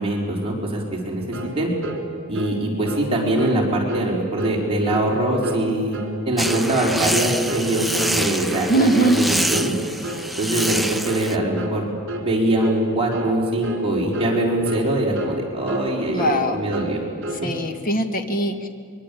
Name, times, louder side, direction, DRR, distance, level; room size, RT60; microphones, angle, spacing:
voice 1, 0.0-1.7 2.3-6.0 6.3-9.7 10.4-11.8 12.2-17.0, right 1 dB, 25° right, -3 dB, 4.6 m, -23 dB
sound 1, 1.3-1.6 1.8-2.0 2.3-2.6 2.9-3.1 3.4-3.6 3.9-4.1 4.4-4.6 4.9-5.1 5.4-5.7 5.9-6.2 6.4-6.7 7.0-7.2 7.5-7.7 8.0-8.2 8.5-8.7 9.0-9.2 9.5-9.8 10.0-10.3 10.5-10.8 11.1-11.3 11.6-11.8 12.1-12.3 12.6-12.8 13.1-13.4 13.6-13.9 14.1-14.4 14.7-14.9 15.2-15.4 15.7-15.9 16.2-16.4 16.7-17.0 17.2-17.5, right 1 dB, 60° right, 3.5 m, -30 dB
sound 2, 6.4-11.4, right 1 dB, ahead, 0.7 m, -26 dB
voice 2, 8.7-9.2 16.1-16.6 17.4-18.7, right 1 dB, 40° left, 6 dB, 1.8 m, -21 dB
23.5 x 23.0 x 8.6 m, 2.2 s
head